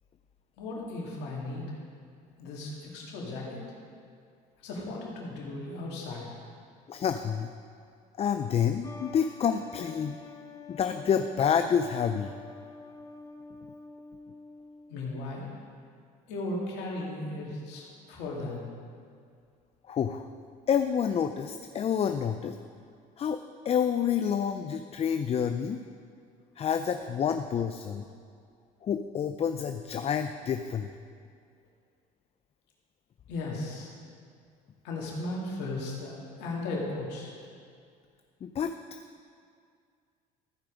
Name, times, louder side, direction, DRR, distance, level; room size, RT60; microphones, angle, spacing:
voice 1, 0.6-1.7 2.4-3.6 4.6-6.3 14.9-15.5 16.3-18.7 33.3-33.9 34.8-37.4, left 2 dB, 75° left, -3 dB, 2.4 m, -36 dB
voice 2, 6.9-7.5 8.2-10.2 10.7-12.3 19.9-20.2 20.7-22.6 23.2-23.4 23.6-25.8 26.6-28.0 28.8-30.9 38.4-38.7, left 7 dB, 35° left, 8 dB, 0.4 m, -28 dB
sound 1, 8.8-15.1, left 4 dB, 20° left, 0.8 m, -47 dB
14.5 x 5.0 x 5.0 m, 2.2 s
supercardioid pair, 85°, 18 cm